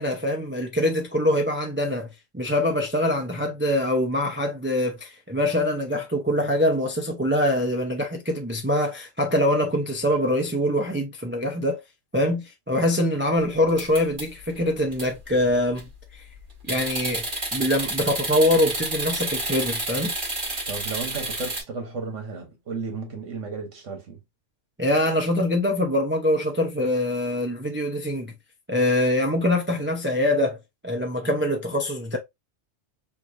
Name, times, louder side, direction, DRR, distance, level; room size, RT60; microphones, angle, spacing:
voice 1, 0.0-2.1 2.3-11.8 12.1-16.3 16.7-17.2 17.5-20.1 24.8-28.3 28.7-30.6 30.8-32.2, left 1 dB, 15° right, 0.4 m, -24 dB
sound 1, 13.7-14.5 14.9-15.1 15.5-15.9 16.7-21.6, right 2 dB, 45° right, 2.0 m, -30 dB
voice 2, 20.7-24.2, right 4 dB, 80° right, 1.7 m, -34 dB
4.5 x 2.5 x 2.6 m
omnidirectional pair, 1.3 m